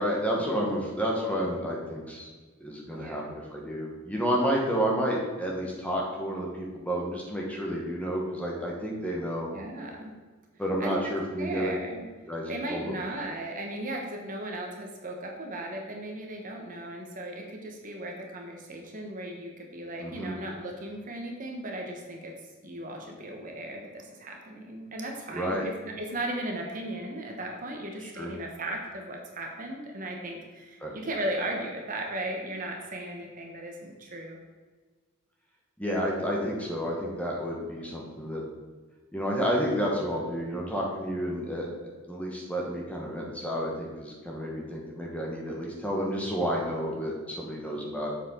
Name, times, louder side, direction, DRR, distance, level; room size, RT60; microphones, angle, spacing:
voice 1, 0.0-2.3 2.6-9.5 10.6-11.7 12.3-12.9 20.0-20.3 25.3-25.7 28.0-28.3 30.8-30.9 35.8-38.4 39.1-41.7 42.1-48.1, equal, 5° left, -2 dB, 1.2 m, -30 dB
voice 2, 2.9-3.3 9.5-10.1 10.8-11.0 11.4-12.0 12.5-22.3 22.6-34.4, right 1 dB, 40° right, 1 dB, 1.1 m, -36 dB
7.2 x 7.1 x 3.8 m, 1.4 s
head